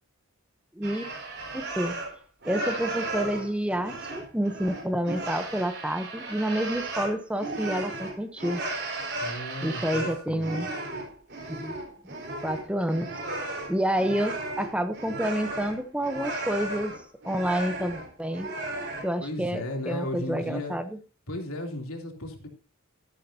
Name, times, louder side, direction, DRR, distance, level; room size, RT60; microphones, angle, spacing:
voice 1, 0.8-1.1 1.5-2.0 2.4-8.6 9.6-10.7 11.5-11.7 12.0-12.1 12.4-13.1 13.7-16.9 17.2-18.5 19.0-20.9, right 1 dB, 5° right, 9 dB, 0.7 m, -29 dB
sound 1, 0.8-2.1 2.4-19.1, right 2 dB, 50° right, 4.3 m, -35 dB
voice 2, 9.2-10.6 19.2-20.7 21.3-22.5, left 1 dB, 85° left, 2 dB, 3.0 m, -35 dB
13.0 x 12.0 x 2.8 m, 0.34 s
head